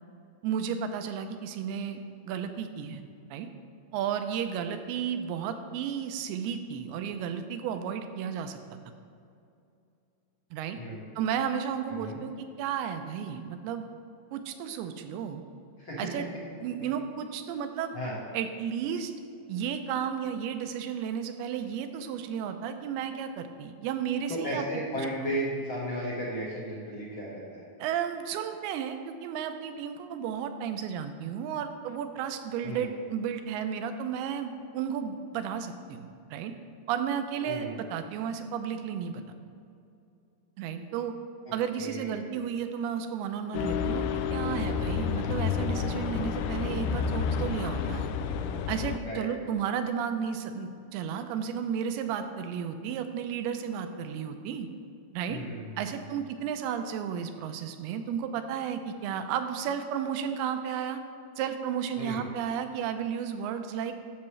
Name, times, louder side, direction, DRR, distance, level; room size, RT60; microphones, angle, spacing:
voice 1, 0.4-2.0 2.3-3.0 3.3-3.5 3.9-8.6 10.5-10.8 11.2-13.8 14.3-15.4 16.0-16.3 16.6-17.9 18.3-19.1 19.5-24.7 25.2-25.3 27.8-36.5 36.9-39.2 40.6-41.1 41.5-48.1 48.7-54.7 55.1-55.4 55.8-61.0 61.4-64.0, right 8 dB, 85° right, 8 dB, 2.6 m, -33 dB
voice 2, 24.3-27.6 32.6-32.8 37.4-37.8 41.8-42.3 49.1-49.3 55.3-55.8 56.1-56.2 62.0-62.2, equal, 70° left, -6 dB, 1.2 m, -35 dB
sound 1, 43.5-49.0, left 7 dB, 90° left, 2.5 m, -30 dB
12.0 x 7.1 x 3.2 m, 2.5 s
omnidirectional pair, 4.5 m